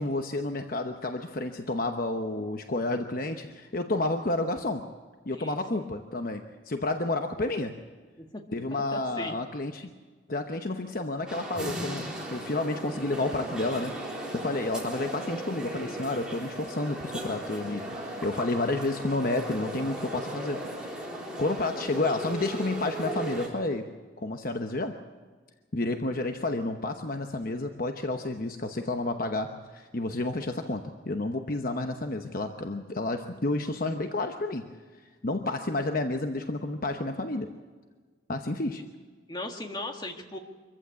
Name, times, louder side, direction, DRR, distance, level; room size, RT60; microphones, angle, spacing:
voice 1, 0.0-4.9 5.3-7.7 8.5-9.9 10.3-21.1 21.4-23.9 24.2-25.0 25.7-34.6 35.2-37.5 38.3-38.8, left 2 dB, 50° left, 6 dB, 1.0 m, -30 dB
voice 2, 5.3-5.9 8.2-8.4 8.7-9.4 38.7-38.8 39.3-40.4, left 2 dB, 25° left, 3 dB, 1.9 m, -38 dB
sound 1, 11.3-23.5, right 1 dB, 5° right, 4.0 m, -37 dB
25.0 x 15.0 x 8.2 m, 1.4 s
head